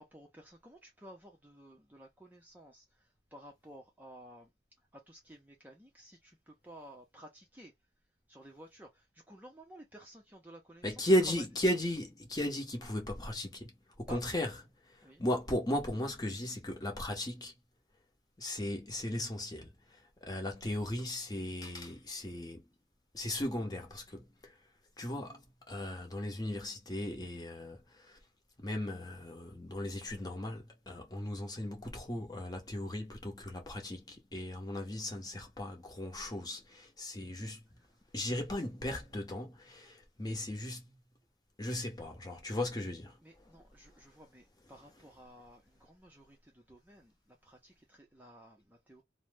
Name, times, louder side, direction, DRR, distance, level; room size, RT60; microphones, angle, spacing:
voice 1, 0.0-4.5 4.9-7.7 8.3-11.5 14.1-14.3 15.0-15.3 37.8-38.0 43.2-49.0, right 1 dB, 10° right, 0.5 m, -54 dB
voice 2, 10.8-14.5 14.8-17.5 18.4-22.6 23.1-24.6 25.0-28.2 28.6-37.6 38.1-41.0 41.6-43.5, left 1 dB, 20° left, 0.8 m, -36 dB
2.7 x 2.0 x 3.3 m
head